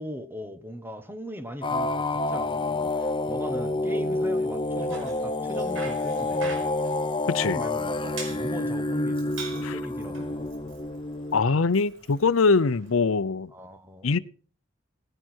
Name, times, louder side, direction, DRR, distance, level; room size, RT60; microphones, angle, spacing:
voice 1, 0.0-6.7 7.4-10.5 13.5-14.2, equal, 10° right, 1.2 m, -39 dB
sound 1, 1.6-11.4, left 2 dB, 25° left, 0.7 m, -28 dB
Bicycle, 4.6-13.0, right 4 dB, 75° right, 5.3 m, -45 dB
voice 2, 7.3-7.6 9.6-9.8 11.3-13.5 14.0-14.2, left 4 dB, 85° left, 0.6 m, -23 dB
18.5 x 11.0 x 4.5 m
head